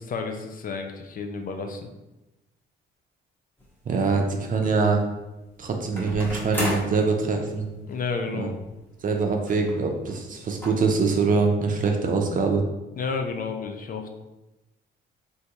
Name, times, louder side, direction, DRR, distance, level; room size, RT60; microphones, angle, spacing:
voice 1, 0.0-1.9 7.9-8.5 13.0-14.1, left 4 dB, 45° left, 5 dB, 0.4 m, -31 dB
sound 1, 3.6-3.7 6.0-7.0 7.9-8.0 8.2-8.3 9.5-9.8 10.1-10.2 10.6-10.7, left 1 dB, 10° left, 1.0 m, -31 dB
voice 2, 3.9-5.0 5.6-7.7 8.3-8.5 9.0-12.6, right 4 dB, 45° right, 3 dB, 0.6 m, -24 dB
3.5 x 2.6 x 2.9 m, 1.0 s
cardioid pair, 90°, 20 cm